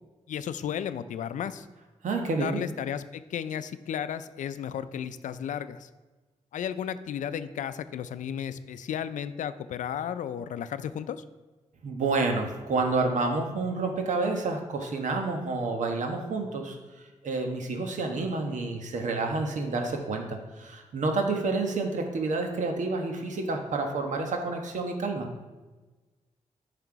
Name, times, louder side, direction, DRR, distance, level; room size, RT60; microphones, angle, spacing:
voice 1, 0.3-1.7 2.4-5.9 6.5-11.2, left 9 dB, 85° left, 13 dB, 0.4 m, -34 dB
voice 2, 2.0-2.6 11.8-16.8 17.2-25.3, right 3 dB, 80° right, 4 dB, 1.3 m, -29 dB
9.6 x 5.8 x 4.6 m, 1.2 s
cardioid pair, 55°, 13 cm